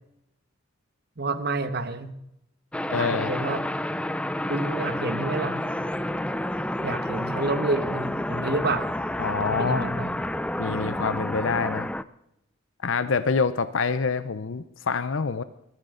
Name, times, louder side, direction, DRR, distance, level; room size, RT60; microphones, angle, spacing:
voice 1, 1.2-2.1 2.9-3.6 4.5-5.7 6.8-8.9 9.5-10.2, right 3 dB, 50° right, 11 dB, 1.2 m, -29 dB
sound 1, 2.7-12.0, left 1 dB, 5° left, 0.4 m, -29 dB
voice 2, 2.9-3.3 9.2-9.9 10.6-11.9 12.8-15.4, left 5 dB, 70° left, 13 dB, 0.6 m, -26 dB
21.0 x 13.5 x 3.9 m, 0.82 s
head